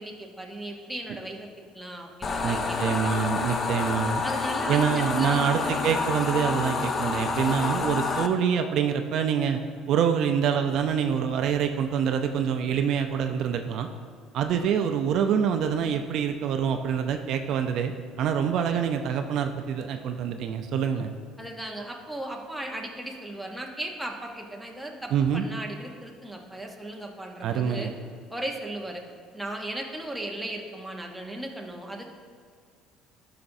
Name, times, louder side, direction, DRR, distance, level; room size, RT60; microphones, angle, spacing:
voice 1, 0.0-1.5 1.7-3.1 4.2-5.8 21.4-27.9 28.3-29.0 29.3-32.1, right 1 dB, ahead, 0 dB, 0.8 m, -37 dB
sound 1, 2.2-8.3, left 4 dB, 30° left, 0.5 m, -28 dB
voice 2, 2.4-4.2 4.7-9.6 9.9-13.9 14.3-21.1 25.1-25.4 27.4-27.9, right 8 dB, 60° right, 6 dB, 0.5 m, -26 dB
12.5 x 5.9 x 2.6 m, 2.1 s
cardioid pair, 135°, 0 cm